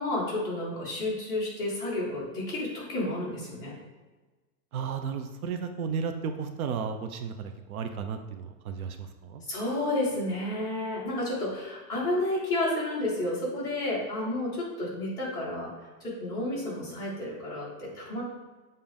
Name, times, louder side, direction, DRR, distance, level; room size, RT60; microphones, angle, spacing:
voice 1, 0.0-3.7 9.5-15.7 16.0-18.2, left 1 dB, 10° left, -10 dB, 1.6 m, -31 dB
voice 2, 4.7-9.4, right 6 dB, 65° right, 7 dB, 0.7 m, -34 dB
7.4 x 2.7 x 5.1 m, 1.3 s
supercardioid pair, 180°, 45 cm